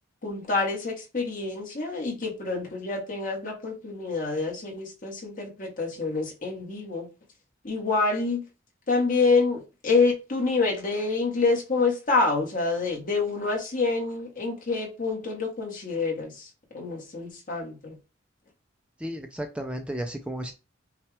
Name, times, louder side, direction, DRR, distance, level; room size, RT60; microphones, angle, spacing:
voice 1, 0.2-7.1 7.6-8.4 8.9-16.5 16.7-18.0, left 3 dB, 45° left, 1.4 m, -27 dB
voice 2, 19.0-20.5, equal, 5° right, 0.4 m, -33 dB
5.5 x 2.3 x 3.3 m
head